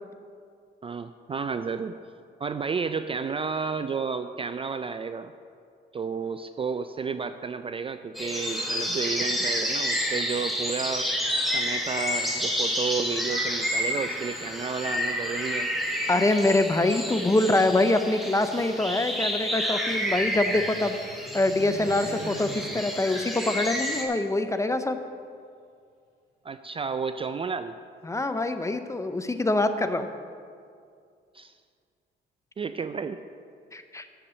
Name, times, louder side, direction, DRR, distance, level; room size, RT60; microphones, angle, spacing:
voice 1, 0.8-2.0 2.4-5.3 5.9-11.1 11.5-15.7 17.1-17.2 26.4-27.7 31.3-31.5 32.6-33.2, right 5 dB, 30° right, 10 dB, 0.3 m, -32 dB
sound 1, 8.1-24.0, equal, ahead, 1.5 m, -30 dB
voice 2, 16.1-25.0 28.0-30.1 33.7-34.1, left 2 dB, 15° left, 9 dB, 0.6 m, -25 dB
sound 2, 19.3-24.0, equal, 50° right, 2.7 m, -43 dB
7.4 x 6.7 x 7.5 m, 2.3 s
cardioid pair, 90°, 20 cm